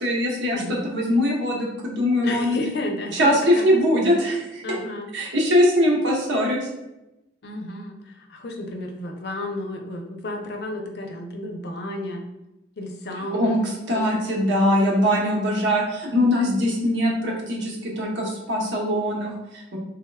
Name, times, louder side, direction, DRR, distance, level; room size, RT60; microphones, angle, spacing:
voice 1, 0.0-2.6 3.1-4.8 5.1-6.7 13.2-19.8, equal, 80° right, -2 dB, 0.9 m, -22 dB
voice 2, 2.2-3.6 4.6-5.1 7.4-12.2 12.8-13.6 13.9-14.1 14.3-14.5, left 1 dB, 65° left, 3 dB, 0.6 m, -32 dB
3.5 x 3.5 x 2.2 m, 0.94 s
head